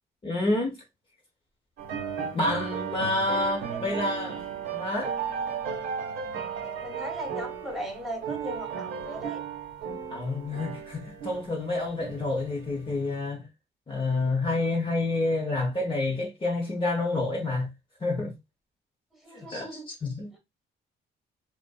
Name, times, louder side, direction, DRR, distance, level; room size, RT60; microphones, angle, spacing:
voice 1, 0.2-0.8 2.3-4.4 4.7-5.1 10.1-13.5 13.9-17.7 18.0-18.3 19.3-20.4, left 2 dB, 25° left, 0.7 m, -28 dB
sound 1, 1.8-13.1, right 7 dB, 85° right, 1.2 m, -35 dB
voice 2, 3.6-4.1 6.6-9.4 19.2-19.9, right 1 dB, ahead, 1.0 m, -38 dB
2.5 x 2.5 x 2.2 m
cardioid pair, 90°, 20 cm